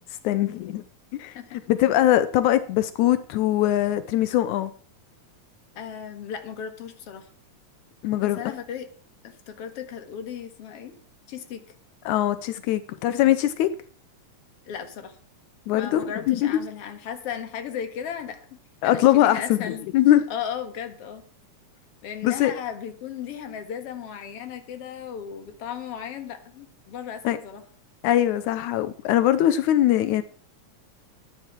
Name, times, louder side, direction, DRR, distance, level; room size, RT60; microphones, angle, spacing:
voice 1, 0.2-0.8 1.2-1.3 1.7-4.7 8.0-8.4 12.1-13.7 15.7-16.0 16.3-16.6 18.8-20.2 22.2-22.5 27.2-27.4 28.0-30.2, left 13 dB, 85° left, 2.1 m, -21 dB
voice 2, 5.8-7.3 8.2-8.9 9.2-11.0 11.3-11.6 14.7-15.2 15.7-18.6 18.8-19.8 20.3-21.2 22.0-27.6, left 8 dB, 55° left, 2.4 m, -35 dB
13.5 x 10.0 x 4.5 m
omnidirectional pair, 3.3 m